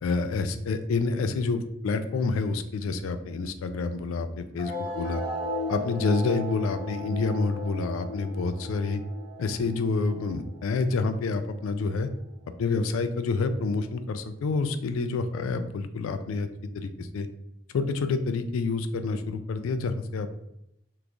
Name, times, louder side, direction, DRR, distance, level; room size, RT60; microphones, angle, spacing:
voice 1, 0.0-5.2 5.7-9.0 9.4-12.1 12.6-16.5 16.7-17.3 17.7-20.3, left 4 dB, 85° left, 10 dB, 0.3 m, -28 dB
sound 1, 4.6-11.6, left 1 dB, 50° left, 0.9 m, -36 dB
3.0 x 2.5 x 3.4 m, 0.79 s
head